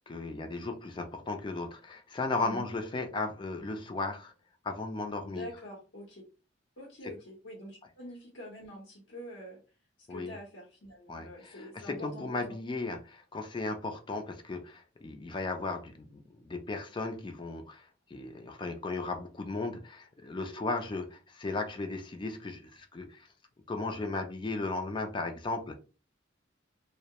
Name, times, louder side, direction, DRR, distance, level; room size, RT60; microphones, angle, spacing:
voice 1, 0.1-4.3 4.6-5.5 10.1-10.3 11.1-23.3 23.7-25.8, left 3 dB, 25° left, 5 dB, 0.4 m, -36 dB
voice 2, 2.4-2.7 5.3-6.2 6.8-9.6 10.1-12.5, equal, 85° left, -2 dB, 0.7 m, -45 dB
2.2 x 2.0 x 2.8 m, 0.33 s
head